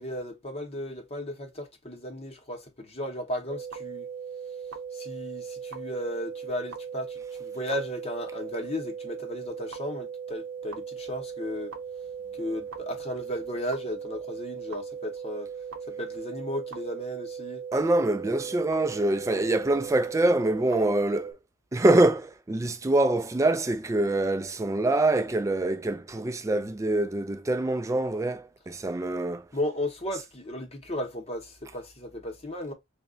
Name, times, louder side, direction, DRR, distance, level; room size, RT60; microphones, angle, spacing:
voice 1, 0.0-4.1 4.9-11.7 12.4-15.5 15.9-17.6 29.5-32.7, left 1 dB, 30° left, 0.8 m, -35 dB
sound 1, 3.5-21.3, right 7 dB, 70° right, 0.7 m, -38 dB
voice 2, 17.7-21.3 21.7-29.4, right 2 dB, 15° right, 0.3 m, -25 dB
3.4 x 2.1 x 3.6 m
head